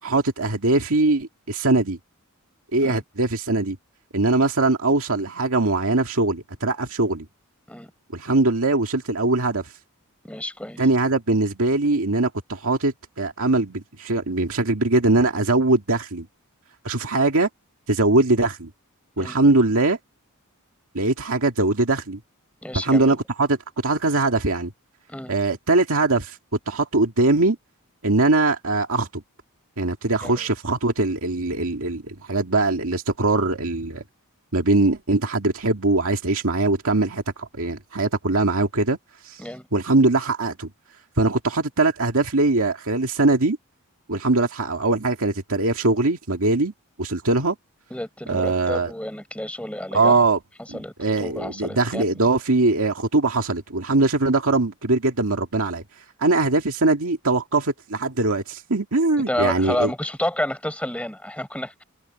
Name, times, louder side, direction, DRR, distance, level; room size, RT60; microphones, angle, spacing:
voice 1, 0.0-2.0 2.7-3.8 4.1-7.3 8.1-9.7 10.8-16.3 16.8-17.5 17.9-18.7 19.2-20.0 20.9-22.2 22.7-23.6 23.8-24.7 25.3-26.4 26.7-27.6 28.0-29.2 29.8-34.0 34.5-39.0 39.2-39.4 39.7-40.7 41.2-43.6 44.1-46.7 47.0-47.6 48.3-48.9 49.9-50.4 50.7-55.8 56.2-59.9, right 2 dB, 65° right, 2.3 m, -21 dB
voice 2, 10.2-10.8 19.2-19.4 22.6-23.2 25.1-25.3 30.2-30.4 39.4-39.7 47.9-50.3 50.7-52.0 59.3-61.8, left 1 dB, 5° left, 7.3 m, -30 dB
head